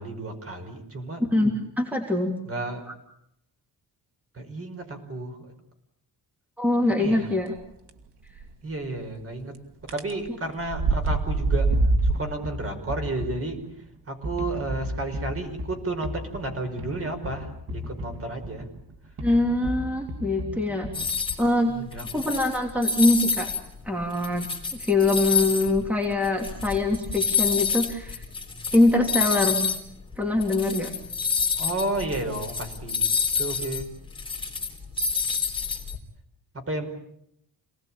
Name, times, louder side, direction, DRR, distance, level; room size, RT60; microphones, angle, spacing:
voice 1, 0.0-1.2 2.5-2.8 4.3-5.5 7.0-7.3 8.6-9.5 9.9-11.7 12.0-13.6 14.1-18.7 21.7-22.1 31.6-33.0 33.4-33.9 36.5-36.9, right 2 dB, 35° right, 5 dB, 5.2 m, -32 dB
voice 2, 1.8-2.3 6.6-7.5 19.2-20.9 21.4-21.7 22.1-23.5 23.8-24.5 24.7-28.2 28.7-29.7 30.2-30.9, left 2 dB, 5° right, 2 dB, 3.1 m, -23 dB
sound 1, 8.4-8.5 9.9-10.1 10.6-12.2, right 2 dB, 75° right, 2.6 m, -22 dB
sound 2, 12.0-21.5, equal, 60° right, 3.0 m, -36 dB
sound 3, 20.9-21.4 21.9-23.6 24.0-29.8 30.1-30.2 30.4-36.0, left 5 dB, 10° left, 3.7 m, -28 dB
28.0 x 19.0 x 8.8 m, 0.77 s
wide cardioid pair, 160°, 41 cm